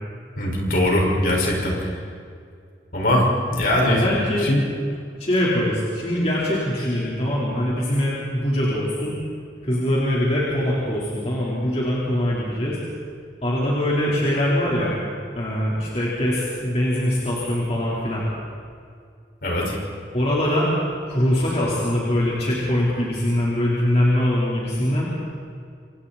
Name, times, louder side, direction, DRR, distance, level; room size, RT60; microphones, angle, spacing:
voice 1, 0.4-1.9 2.9-3.3 3.5-4.0 4.4-4.7 19.4-19.7, left 1 dB, 55° left, -2 dB, 5.8 m, -21 dB
voice 2, 3.8-4.5 5.2-9.2 9.6-12.8 13.4-14.9 15.4-18.2 20.1-20.7 21.1-25.1, left 1 dB, 35° left, -7 dB, 4.3 m, -22 dB
27.5 x 27.5 x 4.4 m, 2.3 s
head